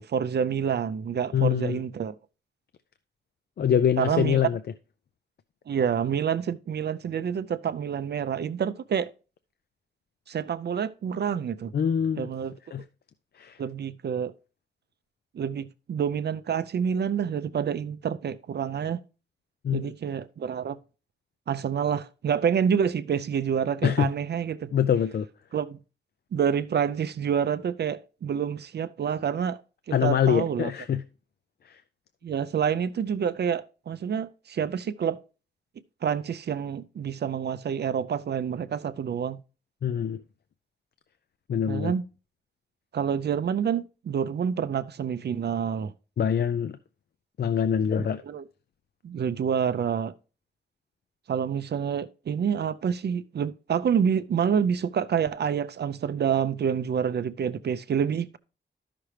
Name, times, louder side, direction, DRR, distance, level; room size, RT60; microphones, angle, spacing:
voice 1, 0.0-2.2 4.0-4.4 5.7-9.1 10.3-11.7 12.2-12.5 13.6-14.3 15.3-19.0 19.7-20.8 21.5-24.7 25.5-25.8 26.3-29.6 29.9-30.7 32.2-35.2 36.0-39.4 41.7-42.0 42.9-45.9 48.0-48.4 49.0-50.1 51.3-58.4, right 7 dB, 70° right, 0.4 m, -28 dB
voice 2, 1.3-1.8 3.6-4.6 11.7-12.3 12.7-12.8 13.4-13.6 19.6-19.9 23.8-24.1 24.7-25.3 29.9-31.0 31.7-31.8 39.8-40.2 41.5-41.9 46.2-46.8 47.4-48.2, left 8 dB, 65° left, 0.4 m, -24 dB
12.5 x 5.9 x 3.2 m
wide cardioid pair, 125°, 18 cm